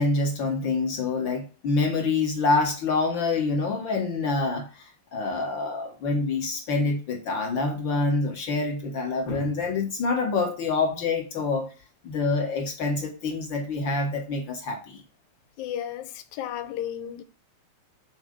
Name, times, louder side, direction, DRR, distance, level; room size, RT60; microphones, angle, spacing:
voice 1, 0.0-11.7 12.0-15.0, left 3 dB, 55° left, 1.4 m, -26 dB
voice 2, 15.6-17.2, left 10 dB, 85° left, 2.1 m, -33 dB
6.6 x 4.2 x 5.0 m
omnidirectional pair, 3.3 m